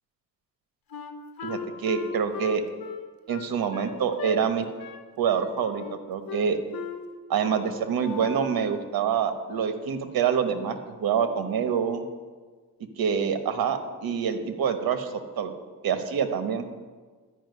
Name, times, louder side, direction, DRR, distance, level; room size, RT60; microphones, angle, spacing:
Wind instrument woodwind instrument, 0.9-4.4 4.8-5.1 5.3-6.0 6.3-7.0 7.4-7.6 8.0-8.7, left 6 dB, 80° left, 1.3 m, -37 dB
voice 1, 1.4-2.7 3.3-4.7 5.2-6.6 7.3-12.0 13.0-15.5 15.8-16.7, right 7 dB, 90° right, 8 dB, 1.2 m, -26 dB
12.5 x 5.8 x 9.4 m, 1.4 s
cardioid pair, 80°, 35 cm